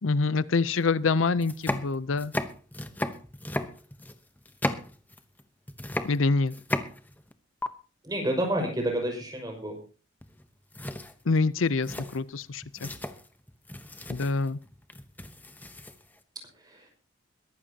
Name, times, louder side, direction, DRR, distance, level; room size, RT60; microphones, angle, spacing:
voice 1, 0.0-2.3 6.0-6.6 11.3-12.9 14.1-14.6, left 4 dB, 75° left, 17 dB, 0.6 m, -26 dB
sound 1, 0.7-0.8 1.3-5.4 5.7-7.3 7.6-7.7 10.2-10.5 10.7-16.2, left 1 dB, 10° left, 0.9 m, -35 dB
voice 2, 8.0-9.8 16.6-16.9, right 1 dB, 20° right, 2 dB, 5.6 m, -29 dB
22.0 x 12.5 x 2.9 m, 0.35 s
head